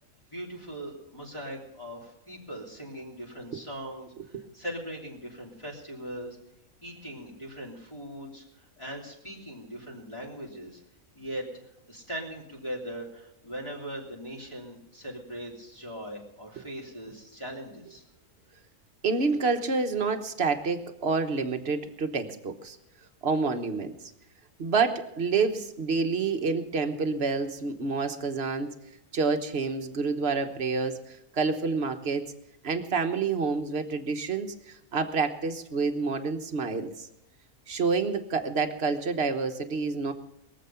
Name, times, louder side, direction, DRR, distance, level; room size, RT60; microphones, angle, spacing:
voice 1, 0.3-6.4 6.8-8.4 8.8-10.8 11.1-18.0, equal, 20° left, -5 dB, 3.3 m, -40 dB
voice 2, 19.0-22.8 23.2-24.0 24.6-28.7 29.1-32.3 32.6-37.1 37.7-40.1, right 4 dB, 50° right, 6 dB, 1.3 m, -28 dB
22.5 x 7.7 x 5.7 m, 0.85 s
omnidirectional pair, 1.5 m